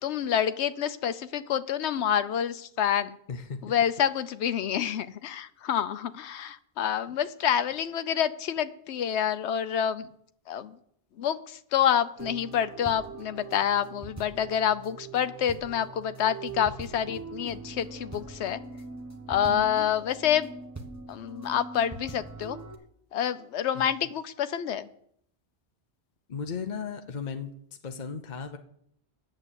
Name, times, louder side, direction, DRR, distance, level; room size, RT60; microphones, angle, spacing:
voice 1, 0.0-3.2 3.6-10.1 10.5-10.8 11.2-18.6 19.3-20.5 21.1-22.6 23.1-24.9, left 9 dB, 85° left, 13 dB, 1.0 m, -28 dB
voice 2, 3.3-3.7 23.7-24.0 26.3-27.5 27.8-28.6, left 5 dB, 45° left, 6 dB, 0.8 m, -36 dB
sound 1, 12.2-22.7, right 3 dB, 15° right, 1.0 m, -42 dB
9.0 x 7.5 x 8.2 m, 0.69 s
omnidirectional pair, 1.1 m